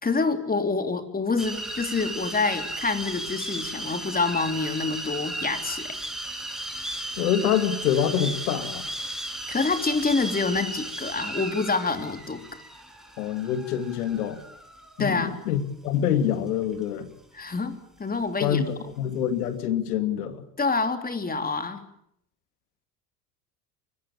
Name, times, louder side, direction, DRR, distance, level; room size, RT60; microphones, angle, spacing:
voice 1, 0.0-6.0 9.5-12.4 15.0-15.4 17.3-18.6 20.6-21.8, left 4 dB, 20° left, 8 dB, 3.5 m, -27 dB
sound 1, 1.4-15.0, right 1 dB, ahead, 5.9 m, -35 dB
voice 2, 7.2-8.9 13.2-14.4 15.0-17.1 18.4-20.4, left 9 dB, 75° left, 10 dB, 2.7 m, -26 dB
24.5 x 22.5 x 8.9 m, 0.73 s
hypercardioid pair, 75°, 46 cm